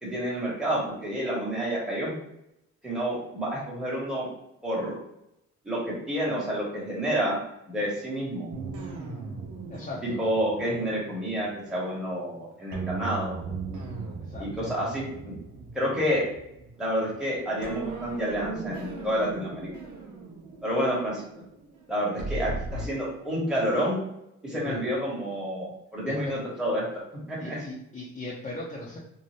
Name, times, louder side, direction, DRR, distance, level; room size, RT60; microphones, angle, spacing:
voice 1, 0.0-2.1 2.8-4.3 4.6-4.9 5.6-7.4 7.7-8.5 10.0-13.4 14.4-15.1 15.7-16.3 16.8-19.7 20.6-21.3 21.9-24.0 24.4-26.9 27.3-27.6, equal, ahead, -6 dB, 1.1 m, -29 dB
sound 1, 8.5-12.3 12.7-17.2 17.6-22.9, right 3 dB, 75° right, 0.8 m, -38 dB
voice 2, 9.7-10.2 14.2-14.5 24.5-24.8 26.0-26.1 27.4-29.0, left 2 dB, 25° left, -6 dB, 0.7 m, -38 dB
2.7 x 2.3 x 3.2 m, 0.82 s
cardioid pair, 90°, 30 cm